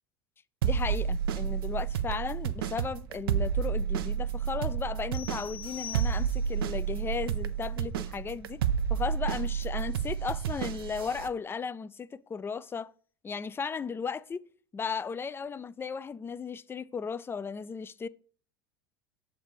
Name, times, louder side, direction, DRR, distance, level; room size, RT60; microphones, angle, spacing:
voice 1, 0.6-8.6 8.9-12.9 13.2-14.4 14.7-18.1, left 5 dB, 20° left, 0.3 m, -35 dB
sound 1, 0.6-11.3, right 8 dB, 80° right, 0.5 m, -30 dB
sound 2, 5.1-6.7, left 8 dB, 50° left, 1.0 m, -43 dB
6.9 x 4.0 x 4.8 m
hypercardioid pair, 90°, 12 cm